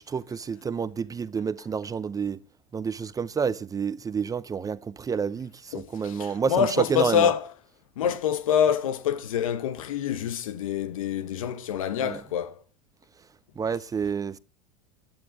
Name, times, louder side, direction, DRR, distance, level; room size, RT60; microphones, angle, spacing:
voice 1, 0.0-2.4 2.7-7.3 12.0-12.2 13.6-14.4, right 6 dB, 20° right, 0.6 m, -29 dB
voice 2, 5.7-7.5 8.0-12.6, left 9 dB, 85° left, 1.1 m, -26 dB
20.5 x 10.5 x 3.6 m
hypercardioid pair, 100°, 17 cm